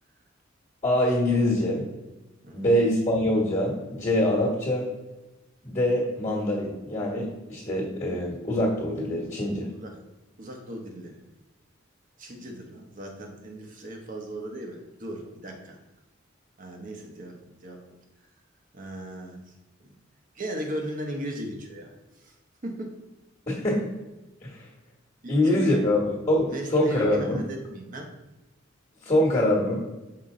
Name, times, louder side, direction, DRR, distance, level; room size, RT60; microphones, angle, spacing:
voice 1, 0.8-1.8 2.5-4.9 5.6-9.7 23.5-23.9 24.4-24.7 25.3-26.0 26.3-27.4 29.0-29.8, left 1 dB, 30° left, -4 dB, 1.4 m, -24 dB
voice 2, 2.4-2.7 9.7-10.0 10.4-11.2 12.2-15.8 16.6-18.0 18.7-19.4 19.8-19.9 20.3-22.3 22.6-23.0 25.2-25.9 26.4-28.1, right 1 dB, 45° right, 2 dB, 1.0 m, -37 dB
5.8 x 4.4 x 3.8 m, 1.0 s
head